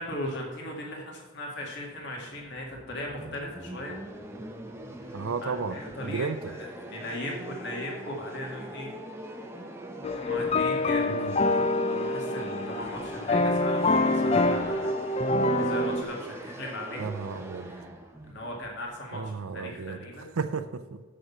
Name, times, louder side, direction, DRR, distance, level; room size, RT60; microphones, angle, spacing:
voice 1, 0.0-4.0 5.0-9.0 10.1-11.6 11.9-17.0 17.6-17.9 18.3-20.3, left 1 dB, 50° left, -1 dB, 2.1 m, -38 dB
sound 1, 1.8-19.6, right 1 dB, 10° right, 0.7 m, -42 dB
voice 2, 5.1-5.8 6.0-6.5 11.1-11.4 17.0-17.7 19.1-20.0 20.4-21.0, right 5 dB, 75° right, 9 dB, 0.5 m, -33 dB
sound 2, 10.0-16.0, left 2 dB, 30° left, 0.4 m, -26 dB
7.8 x 6.5 x 7.1 m, 1.4 s
head